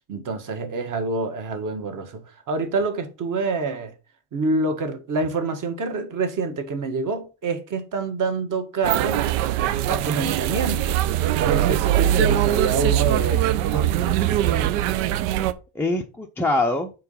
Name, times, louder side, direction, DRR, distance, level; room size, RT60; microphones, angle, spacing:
voice 1, 0.1-2.2 2.5-3.9 4.3-9.3 9.9-11.0 11.4-13.5, right 3 dB, 40° right, 1.4 m, -26 dB
sound 1, 8.8-15.5, right 12 dB, 90° right, 0.6 m, -22 dB
voice 2, 13.7-15.0 15.8-16.9, left 2 dB, 5° left, 0.4 m, -26 dB
4.6 x 3.9 x 5.5 m
cardioid pair, 115°, 46 cm